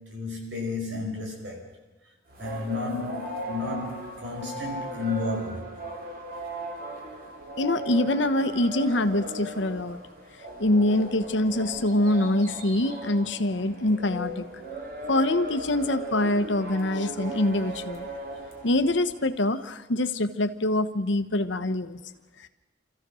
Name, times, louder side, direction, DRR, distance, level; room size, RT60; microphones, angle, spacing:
voice 1, 0.0-1.7 2.4-5.7, left 3 dB, 75° right, 5.3 m, -32 dB
sound 1, 2.3-19.3, right 1 dB, 50° right, 3.0 m, -38 dB
voice 2, 7.6-10.0 10.6-14.5 15.1-18.1 18.6-22.0, left 1 dB, 75° left, 1.1 m, -25 dB
27.5 x 14.5 x 6.4 m
head